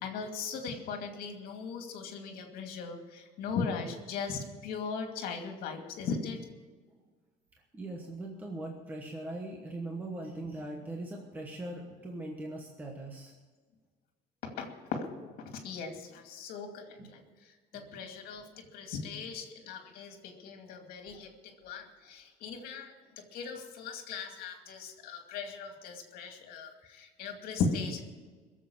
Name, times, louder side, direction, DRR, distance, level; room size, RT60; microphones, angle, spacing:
voice 1, 0.0-6.4 14.6-14.7 14.9-17.2 17.7-18.4 18.7-28.0, left 5 dB, 60° left, 4 dB, 2.5 m, -38 dB
voice 2, 7.7-13.3 17.0-17.1 17.7-18.0, right 2 dB, 10° right, 1 dB, 1.2 m, -40 dB
22.0 x 7.6 x 7.1 m, 1.4 s
cardioid pair, 180°, 17 cm